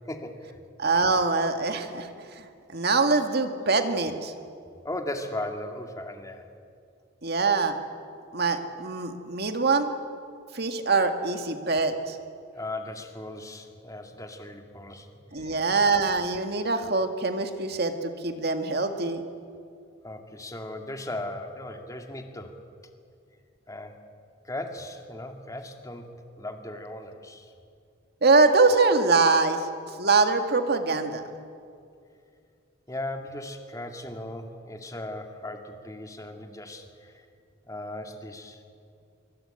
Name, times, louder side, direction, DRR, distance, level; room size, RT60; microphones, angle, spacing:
voice 1, 0.1-0.6 4.8-6.5 12.5-15.1 15.4-15.7 20.0-22.6 23.7-23.9 24.4-27.5 32.9-37.3 37.6-38.6, left 1 dB, 15° left, 4 dB, 2.2 m, -37 dB
voice 2, 0.8-4.3 7.2-7.7 8.3-9.9 10.5-12.2 15.3-19.2 28.2-31.3, right 3 dB, 55° right, 6 dB, 2.0 m, -24 dB
24.5 x 23.5 x 8.9 m, 2.4 s
head